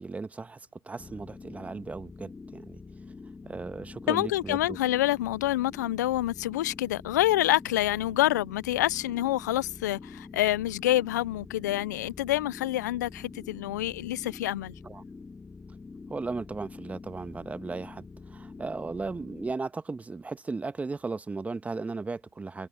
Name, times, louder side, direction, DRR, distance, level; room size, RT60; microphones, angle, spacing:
voice 1, 0.0-2.8 3.4-4.8 14.8-15.0 16.1-22.7, right 3 dB, 15° right, 1.5 m, -36 dB
sound 1, 1.0-19.5, left 4 dB, 15° left, 2.7 m, -46 dB
voice 2, 4.1-14.7, left 15 dB, 75° left, 0.6 m, -27 dB
hypercardioid pair, 85°, 9 cm